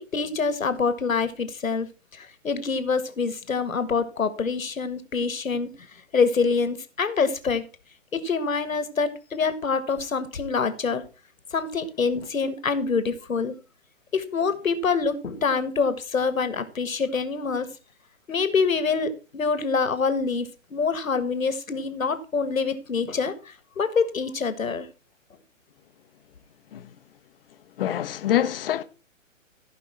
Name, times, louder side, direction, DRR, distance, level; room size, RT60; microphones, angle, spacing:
voice 1, 0.1-1.9 2.1-7.6 8.1-11.0 11.5-13.5 14.1-17.7 18.3-24.9, left 5 dB, 85° left, 1.6 m, -26 dB
voice 2, 27.8-28.8, left 11 dB, 45° left, 0.9 m, -25 dB
15.5 x 5.4 x 4.3 m
hypercardioid pair, 135°, 40 cm